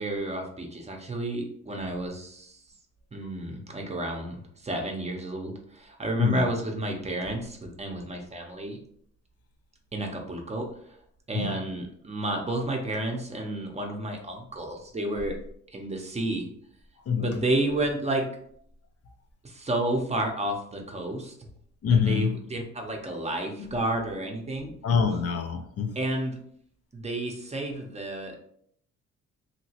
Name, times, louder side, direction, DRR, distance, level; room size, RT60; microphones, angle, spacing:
voice 1, 0.0-2.6 3.1-8.8 9.9-10.7 11.3-15.4 15.7-16.5 17.2-18.3 19.4-21.3 21.9-24.7 26.0-26.4 26.9-28.4, right 1 dB, 20° right, 2 dB, 0.7 m, -31 dB
voice 2, 17.1-17.4 21.8-22.4 23.6-23.7 24.8-26.0, left 6 dB, 50° left, 5 dB, 0.5 m, -25 dB
2.9 x 2.9 x 2.8 m, 0.66 s
cardioid pair, 90°, 30 cm